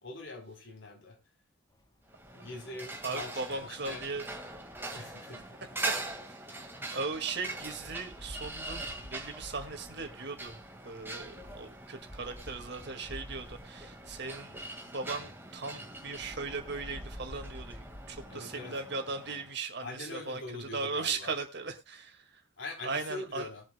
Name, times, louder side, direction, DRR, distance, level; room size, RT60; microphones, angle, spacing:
voice 1, 0.0-1.2 2.3-4.0 4.9-5.5 6.8-7.0 18.3-18.8 19.8-21.3 22.6-23.6, left 2 dB, 65° left, 3.9 m, -43 dB
sound 1, 1.7-18.3, equal, 20° left, 1.8 m, -51 dB
sound 2, 2.1-19.5, right 2 dB, 10° right, 2.0 m, -43 dB
voice 2, 3.0-4.6 4.9-5.2 5.6-6.0 6.3-6.4 6.9-14.6 14.9-22.4 22.8-23.5, right 4 dB, 55° right, 2.1 m, -38 dB
21.0 x 7.5 x 2.3 m
head